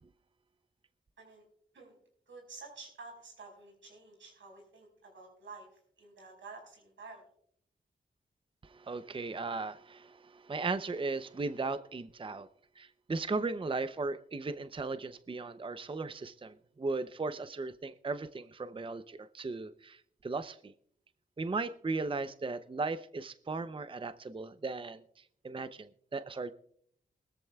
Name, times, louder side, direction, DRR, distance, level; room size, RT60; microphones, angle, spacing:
voice 1, 2.3-5.7 6.0-7.2, right 3 dB, 90° right, 1 dB, 5.2 m, -50 dB
voice 2, 8.6-12.5 12.8-20.7 21.4-26.5, right 3 dB, 25° right, 12 dB, 0.6 m, -37 dB
20.5 x 14.0 x 2.3 m, 0.64 s
cardioid pair, 50°, 19 cm